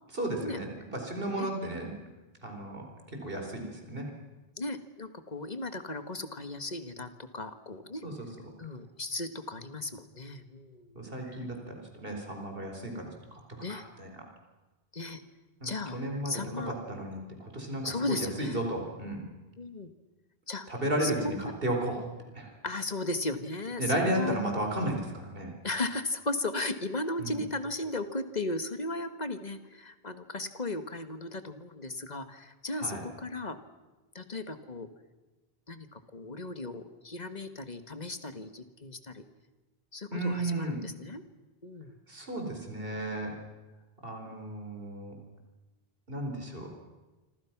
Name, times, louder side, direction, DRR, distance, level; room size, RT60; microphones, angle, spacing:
voice 1, 0.1-2.1 2.4-2.9 3.1-4.1 8.0-8.3 10.9-13.4 13.7-14.1 15.6-19.2 20.7-22.0 22.3-22.5 23.8-25.5 27.2-27.4 32.8-33.0 40.1-40.8 42.1-43.3 44.0-45.1 46.1-46.7, right 1 dB, 65° right, 2 dB, 4.7 m, -34 dB
voice 2, 1.4-1.7 4.6-8.0 8.6-11.4 13.6-13.8 14.9-15.2 15.6-16.7 17.8-18.6 19.6-19.9 20.5-20.7 21.0-21.2 22.6-24.3 25.6-33.6 34.1-34.9 35.7-39.2 39.9-41.2 41.6-41.9, left 2 dB, 45° left, 9 dB, 1.8 m, -36 dB
26.5 x 26.5 x 6.0 m, 1.2 s
omnidirectional pair, 1.0 m